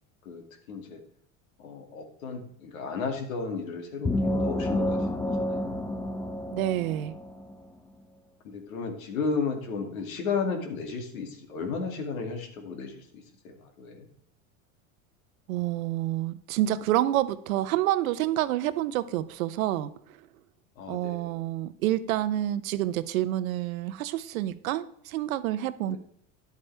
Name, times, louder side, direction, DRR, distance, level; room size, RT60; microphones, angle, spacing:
voice 1, 0.2-1.0 1.6-5.8 8.4-13.0 13.4-14.1 20.8-21.4 25.9-26.0, left 4 dB, 90° left, 4 dB, 2.3 m, -34 dB
sound 1, 4.1-7.6, left 1 dB, 5° left, 0.5 m, -29 dB
voice 2, 6.5-7.2 15.5-20.2 20.9-26.0, right 14 dB, 80° right, 14 dB, 0.8 m, -28 dB
11.0 x 8.3 x 3.4 m, 0.68 s
supercardioid pair, 110°, 40 cm